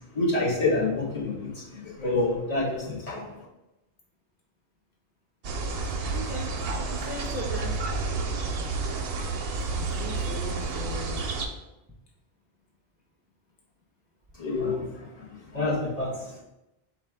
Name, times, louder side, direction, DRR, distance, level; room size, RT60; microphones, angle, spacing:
voice 1, 0.1-1.5 2.0-3.2 14.4-14.8 15.5-16.1, left 2 dB, 35° left, -7 dB, 1.3 m, -26 dB
sound 1, 5.4-11.5, right 3 dB, 65° right, 0.7 m, -30 dB
voice 2, 6.0-6.5 6.8-7.8 9.7-11.2, equal, 15° right, -3 dB, 0.4 m, -38 dB
4.3 x 2.4 x 4.6 m, 0.93 s
omnidirectional pair, 1.1 m